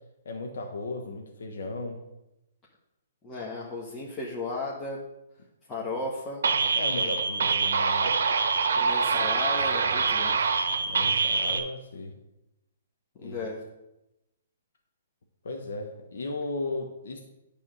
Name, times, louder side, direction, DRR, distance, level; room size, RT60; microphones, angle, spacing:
voice 1, 0.2-2.0 5.8-6.1 6.7-8.1 10.8-12.1 13.2-13.3 15.4-17.2, left 2 dB, 75° left, 2 dB, 1.1 m, -36 dB
voice 2, 3.2-5.0 5.7-6.4 8.7-10.4 13.2-13.6, left 2 dB, 15° left, -5 dB, 1.2 m, -35 dB
sound 1, 6.4-11.6, right 4 dB, 75° right, 0.8 m, -25 dB
9.9 x 3.5 x 6.3 m, 0.93 s
hypercardioid pair, 155°, 0 cm